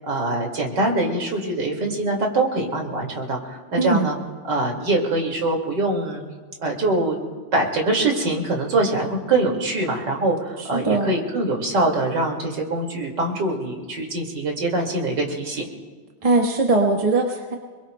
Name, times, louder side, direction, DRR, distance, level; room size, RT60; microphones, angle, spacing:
voice 1, 0.1-4.1 4.5-6.2 6.6-7.2 7.5-15.7, right 2 dB, 60° right, 1 dB, 2.9 m, -23 dB
voice 2, 10.6-11.1 16.2-17.6, right 3 dB, 25° right, 0 dB, 0.9 m, -20 dB
28.5 x 22.0 x 2.2 m, 1.5 s
omnidirectional pair, 2.2 m